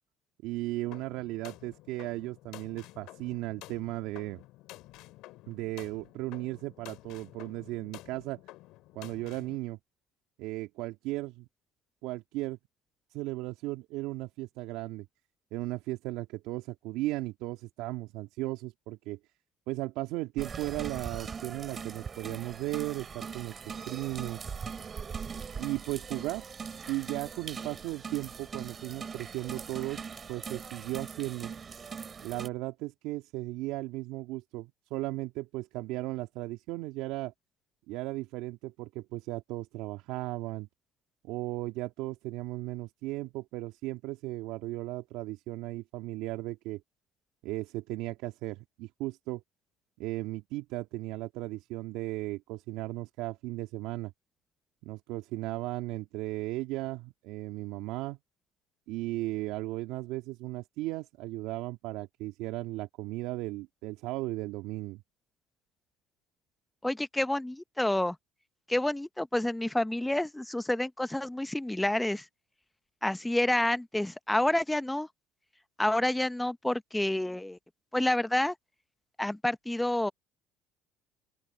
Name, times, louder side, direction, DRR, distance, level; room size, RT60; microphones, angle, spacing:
voice 1, 0.4-4.4 5.5-8.4 8.9-9.8 10.4-11.5 12.0-12.6 13.1-15.1 15.5-19.2 19.7-23.5 23.9-24.4 25.6-26.4 26.9-30.0 30.3-31.5 32.2-37.3 37.9-40.7 41.2-46.8 47.4-49.4 50.0-54.1 54.8-58.2 58.9-65.0, right 19 dB, 75° right, 2.2 m, -36 dB
sound 1, 0.9-9.6, left 18 dB, 70° left, 2.7 m, -51 dB
sound 2, 20.4-32.5, right 6 dB, 35° right, 3.2 m, -41 dB
voice 2, 66.8-68.2 68.7-72.2 73.0-75.1 75.8-77.6 77.9-78.5 79.2-80.1, left 1 dB, 10° left, 0.8 m, -29 dB
open air
supercardioid pair, 75°, 0 cm